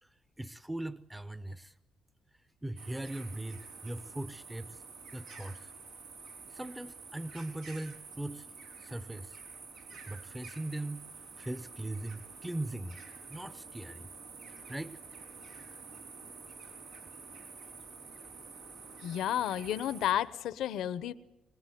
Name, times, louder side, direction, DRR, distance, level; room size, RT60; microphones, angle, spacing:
voice 1, 0.0-1.8 2.6-4.8 5.1-5.7 6.4-8.5 8.8-9.4 10.0-11.1 11.4-13.0 13.3-14.1 14.7-15.0, right 1 dB, 10° right, 13 dB, 0.8 m, -40 dB
sound 1, 2.8-20.1, right 4 dB, 90° right, 4.7 m, -49 dB
voice 2, 19.0-21.1, left 11 dB, 80° left, 14 dB, 1.0 m, -32 dB
23.5 x 20.0 x 9.4 m, 0.89 s
cardioid pair, 90°, 0 cm